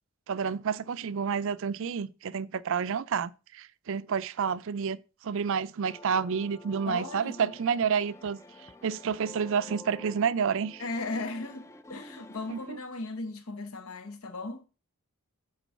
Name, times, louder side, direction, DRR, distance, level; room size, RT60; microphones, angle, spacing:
voice 1, 0.3-8.4 8.8-10.8 12.5-12.8, right 6 dB, 60° right, 0.4 m, -29 dB
sound 1, 5.8-12.7, left 1 dB, 15° left, 0.4 m, -49 dB
voice 2, 6.8-7.5 10.8-14.6, left 2 dB, 75° left, 1.0 m, -37 dB
8.3 x 3.8 x 5.3 m
head